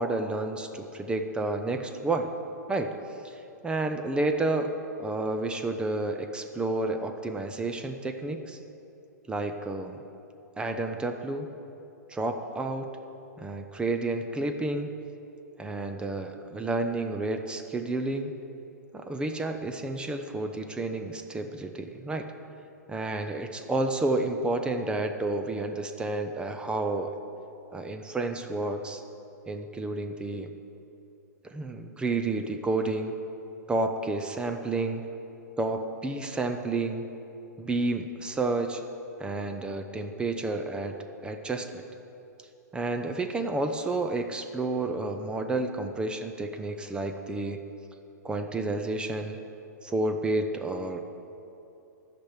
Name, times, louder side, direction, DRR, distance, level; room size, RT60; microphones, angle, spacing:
voice 1, 0.0-2.3 2.7-3.0 3.2-4.7 5.0-8.6 9.3-10.0 10.6-11.5 12.1-12.9 13.4-14.9 15.6-18.3 18.9-22.3 22.9-27.2 27.7-29.0 29.5-30.5 31.4-33.1 33.7-35.1 35.6-37.1 37.6-38.8 39.2-41.0 41.2-41.8 42.7-47.6 48.2-49.4 49.8-51.0, right 2 dB, 10° right, 6 dB, 0.6 m, -30 dB
12.5 x 5.9 x 8.2 m, 2.8 s
figure-of-eight pair, 115°, 10 cm